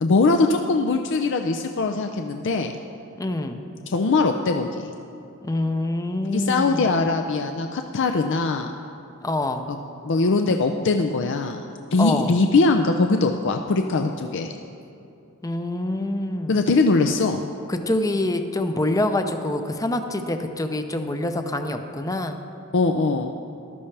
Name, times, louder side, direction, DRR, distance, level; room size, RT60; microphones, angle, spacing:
voice 1, 0.0-2.8 3.9-4.9 6.2-8.7 9.7-9.8 10.0-11.6 11.9-14.5 16.5-17.4 22.7-23.3, left 3 dB, 60° left, 5 dB, 0.5 m, -21 dB
voice 2, 3.2-3.6 5.4-6.9 9.2-9.6 12.0-12.3 15.4-16.6 17.7-22.4, left 1 dB, 15° left, 7 dB, 0.6 m, -26 dB
14.0 x 12.5 x 3.4 m, 2.8 s
head